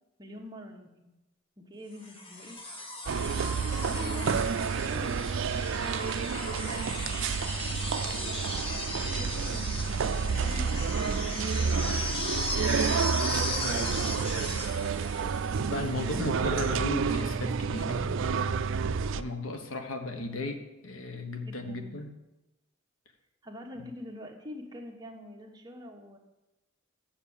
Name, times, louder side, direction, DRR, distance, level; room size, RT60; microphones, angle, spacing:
voice 1, 0.2-1.1 1.6-2.6 3.9-7.0 8.0-8.5 9.0-9.9 10.2-12.1 13.0-14.5 15.3-15.5 21.4-22.0 23.4-26.2, left 1 dB, 20° right, 1 dB, 1.3 m, -45 dB
sound 1, 2.0-16.0 17.5-17.6, left 2 dB, 25° left, 1.2 m, -37 dB
sound 2, 3.1-19.2, right 6 dB, 65° right, 0.4 m, -30 dB
voice 2, 15.7-22.1, left 2 dB, 75° left, 6 dB, 1.1 m, -36 dB
7.2 x 7.2 x 7.1 m, 0.98 s
head